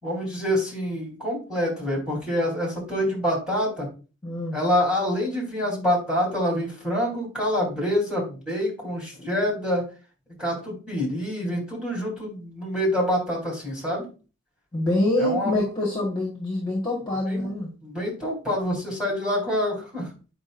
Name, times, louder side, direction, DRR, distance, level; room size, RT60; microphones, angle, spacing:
voice 1, 0.0-3.9 4.5-9.9 10.4-14.1 15.2-15.5 17.3-20.1, equal, 5° right, -3 dB, 3.6 m, -26 dB
voice 2, 4.2-4.6 14.7-17.7, left 1 dB, 20° left, -2 dB, 1.6 m, -25 dB
8.6 x 5.2 x 2.6 m, 0.33 s
head